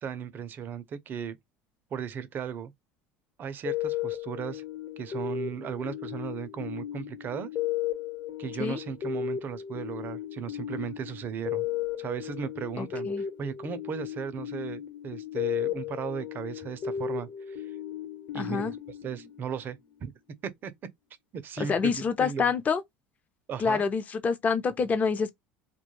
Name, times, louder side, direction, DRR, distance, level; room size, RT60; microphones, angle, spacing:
voice 1, 0.0-1.4 1.9-2.7 3.4-4.6 5.0-7.5 8.4-11.7 12.0-17.7 18.3-18.7 19.0-20.1 20.4-20.7 21.3-22.5 23.5-23.8, right 7 dB, 40° right, 0.5 m, -36 dB
sound 1, 3.7-20.0, left 10 dB, 50° left, 1.0 m, -35 dB
voice 2, 12.8-13.2 18.3-18.7 21.6-22.8 23.6-25.3, left 5 dB, 30° left, 0.5 m, -27 dB
2.2 x 2.1 x 3.0 m
supercardioid pair, 110°, 5 cm